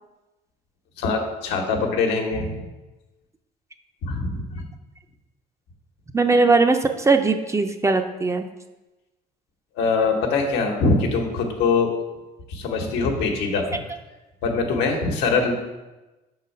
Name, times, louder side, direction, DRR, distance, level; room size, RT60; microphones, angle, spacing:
voice 1, 1.0-2.6 4.0-4.6 9.8-11.9 12.5-13.8 14.4-15.5, left 4 dB, 85° left, 2 dB, 1.1 m, -23 dB
voice 2, 6.1-8.5, right 3 dB, 15° right, 7 dB, 0.4 m, -19 dB
5.6 x 3.9 x 5.4 m, 1.1 s
cardioid pair, 110°, 17 cm